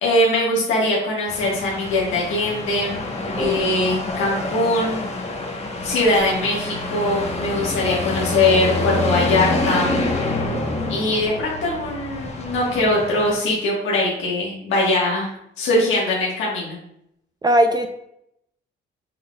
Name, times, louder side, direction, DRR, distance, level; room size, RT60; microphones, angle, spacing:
voice 1, 0.0-3.1 3.4-5.1 5.8-10.0 10.9-16.8, left 2 dB, 80° left, -4 dB, 1.3 m, -21 dB
sound 1, 1.3-13.4, left 2 dB, 35° left, 0.9 m, -27 dB
voice 2, 10.5-11.0 17.4-17.9, right 1 dB, 20° right, 5 dB, 0.4 m, -20 dB
5.4 x 3.9 x 2.2 m, 0.77 s
cardioid pair, 90°, 20 cm